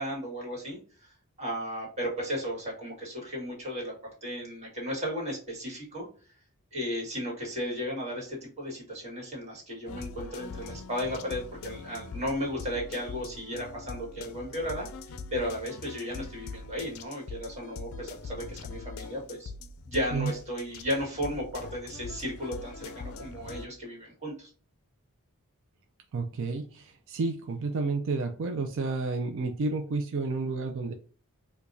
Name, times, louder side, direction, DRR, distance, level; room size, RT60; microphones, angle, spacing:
voice 1, 0.0-3.9 4.2-6.1 6.7-19.5 19.8-24.5, equal, 30° right, -2 dB, 1.7 m, -35 dB
sound 1, 9.9-23.7, left 4 dB, 65° left, 0.4 m, -42 dB
voice 2, 26.1-30.9, right 3 dB, 60° right, 3 dB, 0.4 m, -31 dB
4.7 x 2.2 x 2.6 m, 0.39 s
head